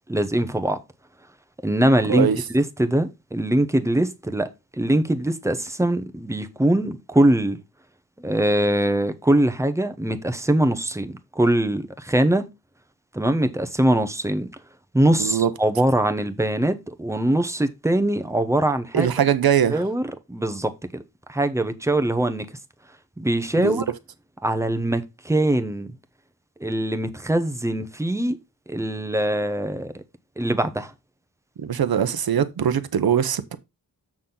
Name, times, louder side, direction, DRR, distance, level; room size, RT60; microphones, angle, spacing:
voice 1, 0.1-0.8 1.6-4.5 4.8-7.6 8.2-12.5 13.1-14.5 14.9-19.1 19.7-21.0 21.3-22.5 23.2-23.8 24.4-25.9 26.6-28.4 28.7-30.0 30.4-30.9, right 1 dB, 10° right, 0.9 m, -22 dB
voice 2, 2.1-2.4 15.2-15.5 18.9-19.8 23.6-23.8 31.6-33.6, right 8 dB, 85° right, 0.9 m, -21 dB
7.3 x 6.2 x 3.9 m
wide cardioid pair, 120°, 36 cm